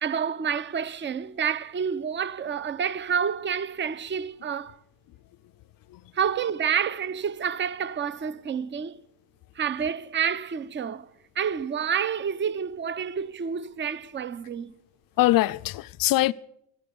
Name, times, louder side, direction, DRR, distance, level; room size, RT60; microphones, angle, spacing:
voice 1, 0.0-4.8 6.1-9.0 9.6-11.1 11.4-14.7, right 7 dB, 25° right, 0.6 m, -29 dB
voice 2, 15.2-16.3, left 16 dB, 45° left, 0.5 m, -23 dB
14.0 x 12.5 x 6.8 m
cardioid pair, 105°, 49 cm